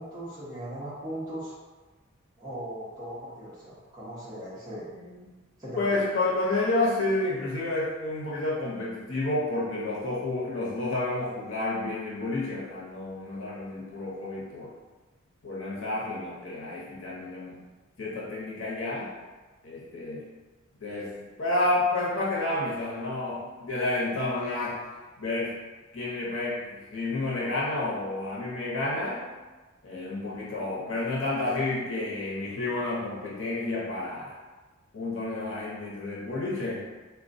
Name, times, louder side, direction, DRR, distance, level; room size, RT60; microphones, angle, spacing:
voice 1, 0.0-1.5 2.4-4.9 5.6-5.9, right 1 dB, 20° right, -10 dB, 0.6 m, -38 dB
voice 2, 5.8-14.7 15.4-17.6 18.0-19.1 19.6-20.2 20.8-24.8 25.2-25.5 25.9-29.2 29.8-34.3 34.9-36.8, left 2 dB, 70° left, -6 dB, 0.7 m, -30 dB
3.5 x 2.2 x 2.6 m, 1.3 s
head